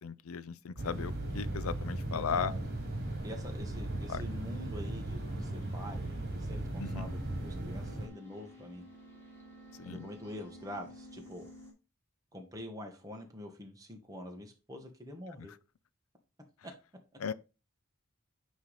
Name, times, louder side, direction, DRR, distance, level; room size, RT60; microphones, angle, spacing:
voice 1, 0.0-2.5 4.1-4.2 6.8-7.1 9.8-10.1 15.4-15.5 17.2-17.3, left 6 dB, 80° left, 0.5 m, -36 dB
sound 1, 0.8-8.1, right 1 dB, 50° right, 2.2 m, -37 dB
sound 2, 2.1-11.7, right 1 dB, 10° left, 2.0 m, -54 dB
voice 2, 2.1-2.6 3.2-8.8 9.8-11.5 12.3-15.5 16.6-16.7, left 1 dB, 15° right, 1.3 m, -46 dB
9.5 x 3.2 x 4.0 m
head